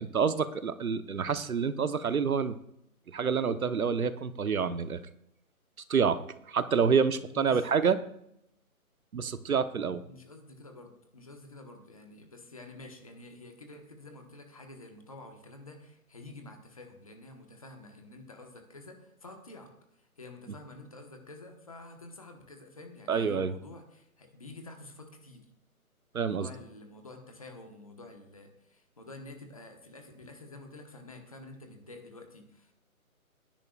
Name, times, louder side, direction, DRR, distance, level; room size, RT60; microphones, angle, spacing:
voice 1, 0.0-2.6 3.1-5.0 5.9-6.2 6.5-8.0 9.1-10.0 23.1-23.5 26.1-26.5, right 6 dB, 70° right, 12 dB, 1.0 m, -27 dB
voice 2, 7.3-7.7 10.0-25.5 26.2-32.7, left 2 dB, 25° left, 4 dB, 1.2 m, -49 dB
20.5 x 10.5 x 2.4 m, 0.77 s
hypercardioid pair, 175°, 44 cm